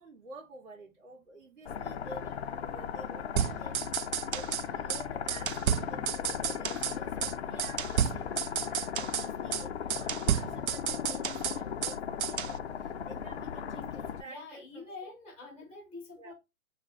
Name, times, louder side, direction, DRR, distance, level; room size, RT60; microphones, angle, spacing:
voice 1, 0.0-5.6 5.8-15.1 16.2-16.3, right 2 dB, 55° right, 2.7 m, -50 dB
sound 1, 1.7-14.2, left 8 dB, 50° left, 0.5 m, -37 dB
sound 2, 3.4-4.6 4.9-5.0 5.3-7.0 7.2-7.3 7.6-9.3 9.5-9.6 9.9-12.0 12.2-12.6, right 9 dB, 75° right, 0.5 m, -31 dB
voice 2, 14.2-16.3, left 3 dB, 5° right, 0.8 m, -46 dB
4.2 x 2.2 x 3.7 m
hypercardioid pair, 145°, 42 cm